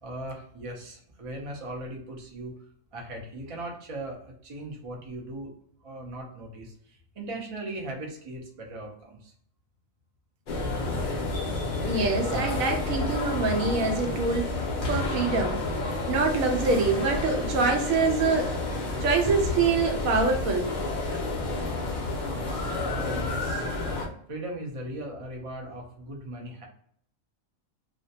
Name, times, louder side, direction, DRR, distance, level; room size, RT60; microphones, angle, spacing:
voice 1, 0.0-2.6 2.9-5.5 5.8-9.3 10.9-11.0 22.8-23.7 24.3-26.7, right 1 dB, 50° right, 0 dB, 0.4 m, -38 dB
sound 1, 10.5-24.1, left 2 dB, 55° left, 0.6 m, -30 dB
voice 2, 11.8-14.6 14.9-15.6 16.1-18.6 19.0-20.7, right 4 dB, 75° right, 3 dB, 1.0 m, -25 dB
2.5 x 2.1 x 2.6 m, 0.65 s
omnidirectional pair, 1.5 m